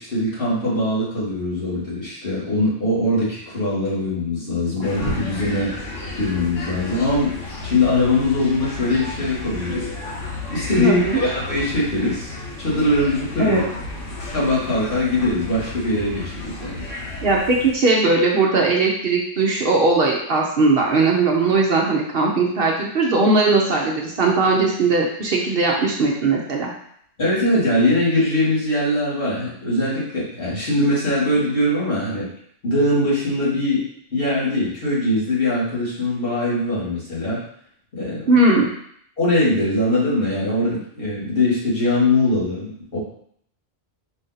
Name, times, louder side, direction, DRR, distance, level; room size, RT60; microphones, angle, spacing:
voice 1, 0.0-5.8 6.1-9.9 10.5-13.6 14.3-16.8 27.2-32.3 32.6-37.4 37.9-38.4 39.2-43.0, left 1 dB, 50° left, -8 dB, 1.9 m, -22 dB
sound 1, 4.8-17.8, left 2 dB, 85° left, 1.3 m, -32 dB
voice 2, 10.8-11.2 13.4-13.6 17.2-26.7 38.3-38.7, right 3 dB, 60° right, -1 dB, 0.8 m, -19 dB
5.1 x 2.6 x 3.9 m, 0.67 s
omnidirectional pair, 1.2 m